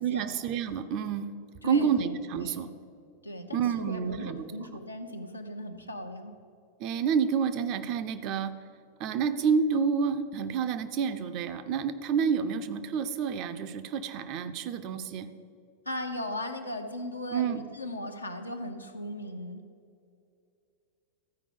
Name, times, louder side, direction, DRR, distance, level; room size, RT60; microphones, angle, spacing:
voice 1, 0.0-1.3 1.6-2.7 3.5-4.4 6.8-8.5 9.0-15.3 17.3-17.6, right 6 dB, 40° right, 10 dB, 0.5 m, -29 dB
voice 2, 1.6-1.9 2.4-2.7 3.2-6.3 15.9-19.6, left 1 dB, 85° left, 4 dB, 0.8 m, -37 dB
13.5 x 4.8 x 5.2 m, 2.5 s
figure-of-eight pair, 90°, 0 cm